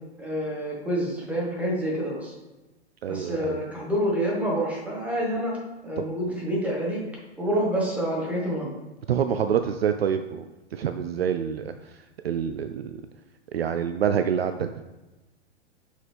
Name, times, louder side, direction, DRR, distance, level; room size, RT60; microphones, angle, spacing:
voice 1, 0.2-2.3 3.1-5.6 5.8-7.0 7.4-8.8, equal, 5° right, -4 dB, 1.6 m, -27 dB
voice 2, 3.0-3.6 6.0-6.1 9.1-10.5 10.7-11.7 12.2-13.0 13.5-14.7, right 8 dB, 65° right, 8 dB, 0.5 m, -26 dB
5.8 x 4.9 x 3.5 m, 1.1 s
figure-of-eight pair, 105°, 34 cm